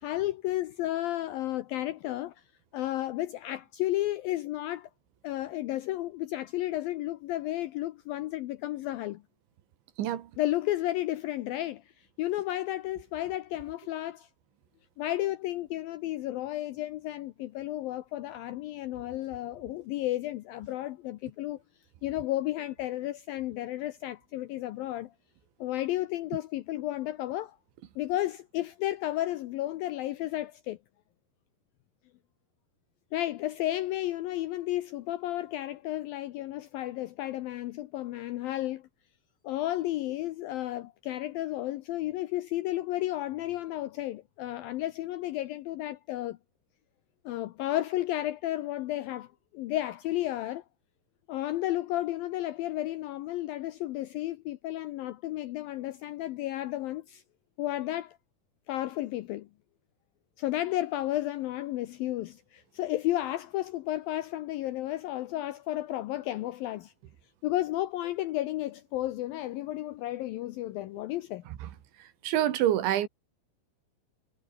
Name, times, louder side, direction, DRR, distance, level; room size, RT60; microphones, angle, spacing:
voice 1, 0.0-2.4 2.7-4.9 5.2-9.2 10.4-14.3 15.0-21.6 22.0-25.1 25.6-27.6 28.0-30.8 33.1-38.9 39.4-46.4 47.3-50.6 51.3-57.2 57.6-58.2 58.7-59.5 60.4-66.9 67.4-71.4, left 15 dB, 85° left, 2.0 m, -32 dB
voice 2, 72.2-73.1, right 12 dB, 80° right, 4.2 m, -26 dB
omnidirectional pair, 5.2 m